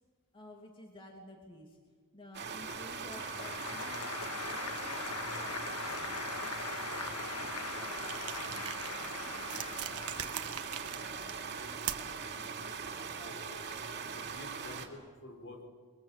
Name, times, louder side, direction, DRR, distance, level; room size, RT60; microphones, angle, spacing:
voice 1, 0.3-6.7 7.0-7.5 7.8-13.7 14.5-14.8, left 1 dB, 25° left, 1 dB, 2.8 m, -55 dB
sound 1, 2.3-14.9, right 5 dB, 50° right, 2.8 m, -41 dB
Applause, 2.6-11.7, left 5 dB, 90° left, 1.6 m, -42 dB
sound 2, 8.0-12.2, right 11 dB, 85° right, 1.3 m, -42 dB
voice 2, 13.1-13.6 14.1-15.7, left 2 dB, 60° left, 4 dB, 5.2 m, -49 dB
29.5 x 23.0 x 7.6 m, 1.5 s
head